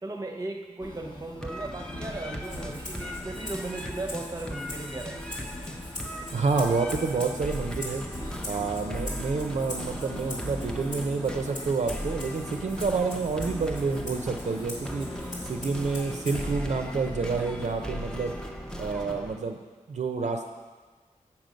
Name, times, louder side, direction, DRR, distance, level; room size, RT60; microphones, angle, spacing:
voice 1, 0.0-5.2, right 2 dB, 25° right, 4 dB, 0.8 m, -37 dB
sound 1, 0.8-18.5, left 1 dB, 35° left, 0.8 m, -44 dB
sound 2, 1.4-19.4, equal, 5° left, 0.6 m, -38 dB
Rattle (instrument), 2.4-16.6, left 1 dB, 85° left, 2.3 m, -42 dB
voice 2, 6.3-8.0 8.4-15.1 15.4-18.3 18.8-19.6 19.9-20.5, right 4 dB, 65° right, 4 dB, 0.5 m, -28 dB
7.6 x 5.9 x 5.1 m, 1.3 s
wide cardioid pair, 110°, 13 cm